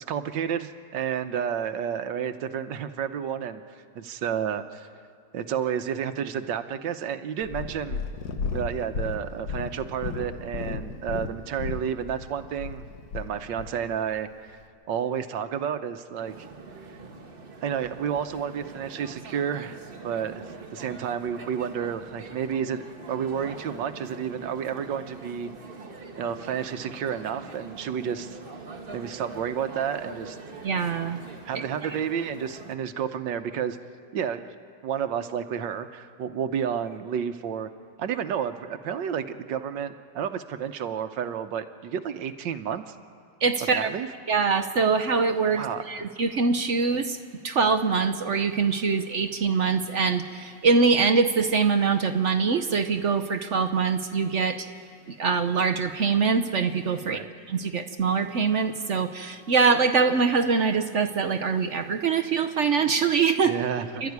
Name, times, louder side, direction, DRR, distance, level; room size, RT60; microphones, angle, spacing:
voice 1, 0.0-3.6 3.9-4.9 5.3-8.0 8.5-12.8 13.1-14.6 14.9-16.5 17.6-25.5 26.2-28.4 28.9-30.4 31.4-33.8 34.1-34.6 34.8-37.7 38.0-42.9 43.7-44.1 45.5-45.8 57.0-57.3 63.5-64.1, right 8 dB, 90° right, 9 dB, 1.6 m, -31 dB
Purr, 7.4-13.7 14.5-14.6, left 5 dB, 60° left, 1.7 m, -34 dB
sound 1, 16.2-32.8, right 3 dB, 35° right, 1.4 m, -43 dB
voice 2, 30.6-31.2 43.4-43.9 44.3-47.2 47.4-54.7 55.1-57.2 57.5-63.5 64.0-64.1, right 5 dB, 55° right, 9 dB, 0.9 m, -23 dB
29.5 x 13.0 x 9.5 m, 2.2 s
omnidirectional pair, 1.9 m